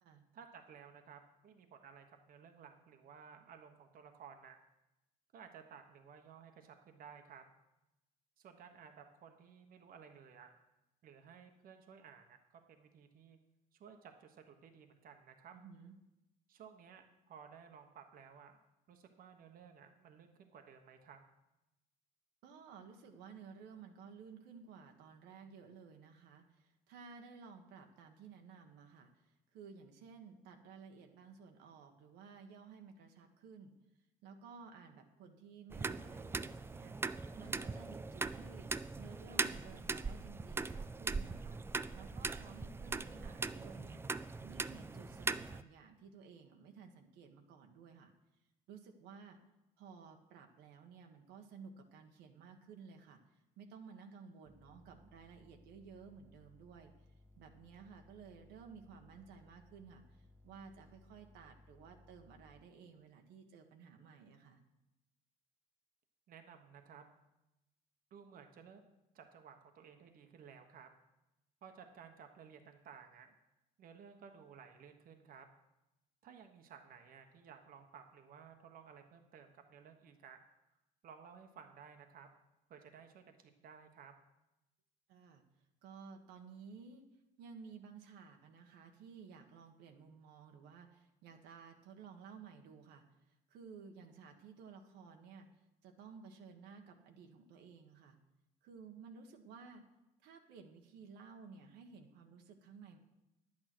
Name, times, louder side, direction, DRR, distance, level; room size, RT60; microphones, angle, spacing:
voice 1, 0.3-4.6 5.3-7.4 8.4-10.5 11.0-13.4 13.7-15.5 16.5-18.6 18.9-21.2 66.3-67.0 68.1-70.9 71.6-73.3 73.8-75.5 76.2-80.4 81.0-82.3 82.7-84.1, right 7 dB, 60° right, 5 dB, 1.2 m, -56 dB
voice 2, 15.5-16.0 22.4-33.7 34.2-37.0 37.4-38.7 39.0-48.1 48.7-49.4 49.8-56.9 57.4-64.6 85.1-85.4 85.8-87.0 87.4-95.5 95.8-98.2 98.6-99.9 100.2-103.0, right 5 dB, 85° right, 3 dB, 1.4 m, -55 dB
sound 1, 35.7-45.6, right 3 dB, 15° right, 0.4 m, -40 dB
sound 2, 54.4-62.6, left 1 dB, 15° left, 1.2 m, -64 dB
10.5 x 8.9 x 6.1 m, 0.94 s
cardioid pair, 110°, 17 cm